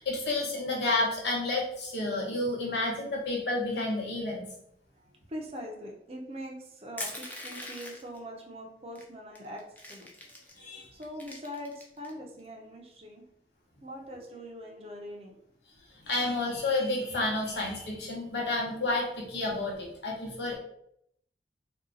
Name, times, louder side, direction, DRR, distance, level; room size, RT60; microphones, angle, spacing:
voice 1, 0.0-4.5 10.6-10.9 15.9-20.6, left 2 dB, 75° left, -2 dB, 1.0 m, -30 dB
voice 2, 5.3-13.2 13.8-15.4 20.3-20.5, equal, 35° right, 0 dB, 0.6 m, -43 dB
Crushing, 7.0-8.2 9.0-9.1 9.4-10.6 11.0-12.1, left 1 dB, 10° left, 0.4 m, -41 dB
2.8 x 2.3 x 3.7 m, 0.72 s
head